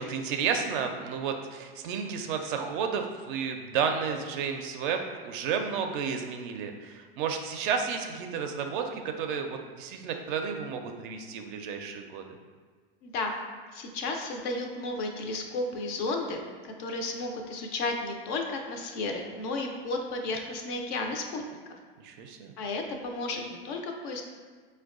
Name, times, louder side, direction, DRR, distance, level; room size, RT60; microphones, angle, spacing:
voice 1, 0.0-12.3 22.0-22.5, right 6 dB, 55° right, 5 dB, 0.4 m, -32 dB
voice 2, 13.0-13.3 13.7-21.4 22.6-24.2, left 2 dB, 40° left, 3 dB, 0.4 m, -33 dB
4.5 x 2.2 x 2.4 m, 1.5 s
hypercardioid pair, 120°, 30 cm